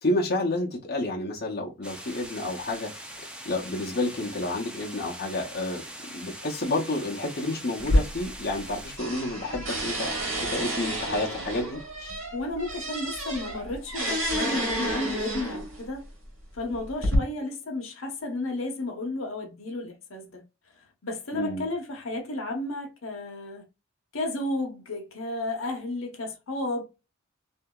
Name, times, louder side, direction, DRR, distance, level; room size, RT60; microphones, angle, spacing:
voice 1, 0.0-2.9 3.4-5.8 6.1-10.2 10.5-12.2 21.3-21.6, left 2 dB, 50° left, 0.8 m, -30 dB
sound 1, 1.8-9.0, right 1 dB, 5° right, 0.5 m, -42 dB
sound 2, 7.8-8.7 9.0-15.8 16.6-17.2, equal, 75° right, 1.4 m, -29 dB
voice 2, 12.3-16.0 16.5-20.4 21.0-23.6 24.1-26.8, left 2 dB, 80° left, 0.8 m, -33 dB
2.8 x 2.7 x 2.3 m
head